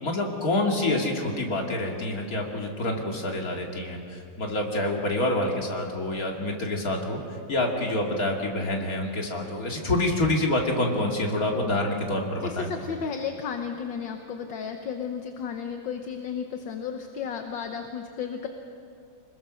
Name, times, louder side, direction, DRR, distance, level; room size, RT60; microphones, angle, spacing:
voice 1, 0.0-4.0 4.4-7.2 7.5-12.7, left 1 dB, 45° left, 0 dB, 3.0 m, -27 dB
voice 2, 12.4-18.5, left 7 dB, 70° left, 5 dB, 1.8 m, -33 dB
26.0 x 21.0 x 6.4 m, 2.6 s
omnidirectional pair, 2.2 m